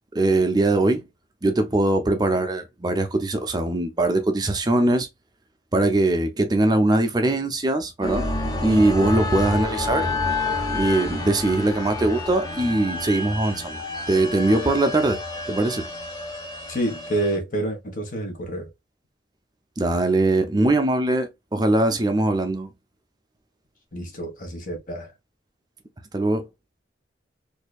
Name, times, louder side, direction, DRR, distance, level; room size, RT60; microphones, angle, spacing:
voice 1, 0.1-1.0 1.4-5.1 5.7-8.3 8.6-10.1 10.7-13.8 14.1-15.2 15.5-15.9 19.8-22.7 26.1-26.5, right 2 dB, 20° right, 0.5 m, -21 dB
sound 1, 8.0-17.4, left 2 dB, 20° left, 1.0 m, -29 dB
voice 2, 16.7-18.7 23.9-25.1, right 1 dB, 45° left, 1.5 m, -28 dB
4.3 x 2.7 x 2.3 m
head